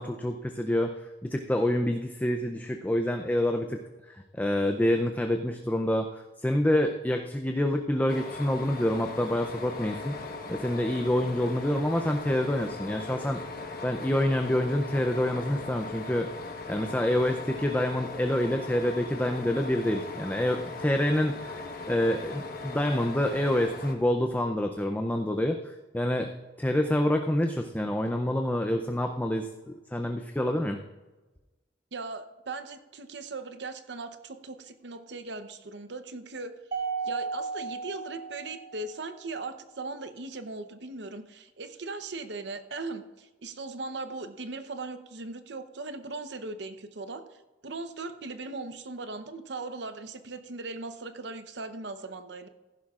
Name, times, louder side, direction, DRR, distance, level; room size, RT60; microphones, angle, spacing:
voice 1, 0.0-3.8 4.1-10.1 10.5-13.4 13.8-16.3 16.7-26.3 26.6-30.8, left 1 dB, 10° left, 4 dB, 0.5 m, -27 dB
sound 1, 8.1-23.9, left 3 dB, 55° left, 1.2 m, -39 dB
voice 2, 31.9-36.6 37.0-47.2 47.6-52.5, right 3 dB, 70° right, 9 dB, 0.8 m, -39 dB
Mallet percussion, 36.7-39.1, right 5 dB, 50° right, 2.1 m, -35 dB
15.0 x 11.5 x 2.4 m, 1.2 s
head